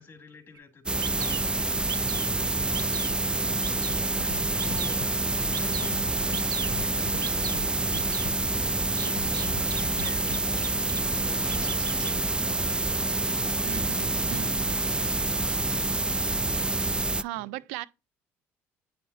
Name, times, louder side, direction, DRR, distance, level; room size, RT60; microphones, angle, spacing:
voice 1, 0.0-16.1 17.3-17.6, left 4 dB, 25° left, 3.0 m, -49 dB
Bird vocalization bird call bird song, 0.5-0.6 1.0-1.4 1.9-2.3 2.7-3.1 3.6-4.0 4.6-5.0 5.5-5.9 6.3-6.7 7.2-7.6 7.9-8.3 9.0-11.0 11.3-12.1, right 10 dB, 65° right, 1.1 m, -38 dB
sound 1, 0.9-17.2, right 2 dB, 15° right, 0.3 m, -27 dB
Scratching (performance technique), 3.9-4.4 4.7-5.1 5.8-6.4 6.7-7.2 7.4-7.7 7.9-8.4 9.1-9.6 10.0-10.4, left 16 dB, 85° left, 0.4 m, -40 dB
voice 2, 13.7-14.7 17.2-17.8, right 16 dB, 85° right, 0.5 m, -37 dB
9.0 x 5.8 x 2.7 m
hypercardioid pair, 65°, 7 cm